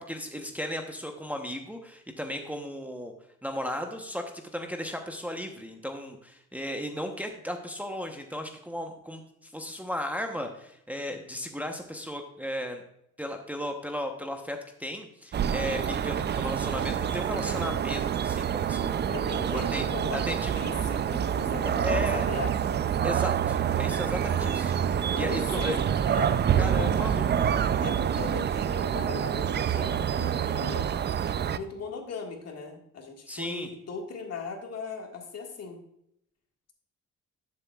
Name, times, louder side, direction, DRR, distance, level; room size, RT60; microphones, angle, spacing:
voice 1, 0.0-3.1 3.4-4.2 4.5-12.8 13.2-19.0 19.5-20.5 21.8-22.3 23.0-24.7 25.2-25.8 26.6-27.5 33.3-33.7, equal, 5° right, 3 dB, 0.9 m, -35 dB
sound 1, 15.3-31.6, right 8 dB, 35° right, 0.4 m, -27 dB
voice 2, 19.1-22.8 25.0-26.4 26.7-27.1 27.8-30.9 31.5-35.8, left 5 dB, 55° left, 2 dB, 1.8 m, -38 dB
11.0 x 7.4 x 2.3 m, 0.76 s
cardioid pair, 90°, 30 cm